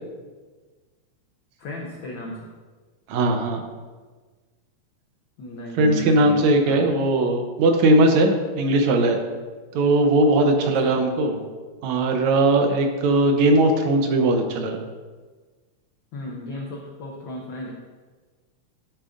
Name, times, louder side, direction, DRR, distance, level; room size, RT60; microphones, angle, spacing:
voice 1, 1.6-2.5 5.4-6.8 10.8-11.0 16.1-17.7, left 1 dB, 90° left, 0 dB, 1.0 m, -34 dB
voice 2, 3.1-3.6 5.8-9.2 9.7-11.4 11.8-14.8, right 2 dB, 75° right, 4 dB, 2.0 m, -19 dB
12.5 x 7.1 x 2.6 m, 1.4 s
omnidirectional pair, 3.4 m